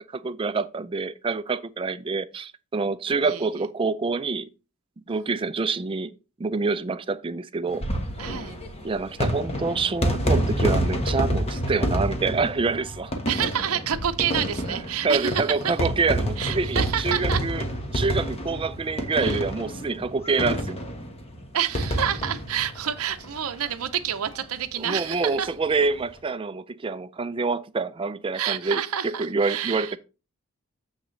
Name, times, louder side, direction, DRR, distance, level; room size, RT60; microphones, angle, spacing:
voice 1, 0.1-4.5 5.1-6.1 6.4-7.8 8.8-13.1 14.7-17.6 17.9-20.8 24.8-30.0, right 4 dB, 25° right, 0.3 m, -26 dB
sound 1, 7.7-23.7 24.0-24.1 24.3-24.4 25.7-25.9, equal, 25° left, 1.1 m, -28 dB
voice 2, 8.2-8.6 13.3-15.4 16.4-17.4 19.1-19.4 21.5-25.5 28.3-30.0, right 9 dB, 75° right, 0.6 m, -28 dB
7.0 x 6.4 x 3.1 m
head